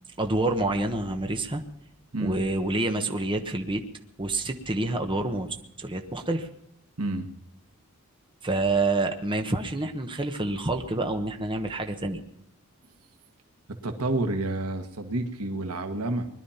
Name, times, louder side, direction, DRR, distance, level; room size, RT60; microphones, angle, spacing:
voice 1, 0.2-1.6 2.2-3.8 4.2-6.5 8.4-12.2, right 2 dB, 20° right, 4 dB, 1.2 m, -27 dB
voice 2, 7.0-7.3 13.7-16.3, right 2 dB, 85° right, 6 dB, 1.5 m, -29 dB
21.0 x 11.5 x 5.7 m, 0.80 s
head